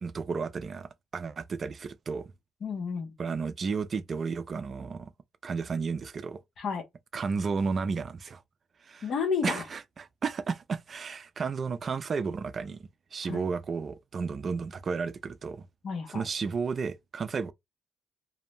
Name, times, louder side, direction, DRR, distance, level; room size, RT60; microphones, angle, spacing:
voice 1, 0.0-2.3 3.2-5.1 5.4-6.4 7.1-8.4 8.8-9.1 9.4-15.7 16.1-17.5, right 5 dB, 45° right, 0.3 m, -33 dB
voice 2, 2.6-3.1 6.6-6.8 9.0-9.6 13.2-13.4 15.8-16.2, left 5 dB, 60° left, 0.7 m, -31 dB
2.5 x 2.1 x 3.0 m
cardioid pair, 90°, 0 cm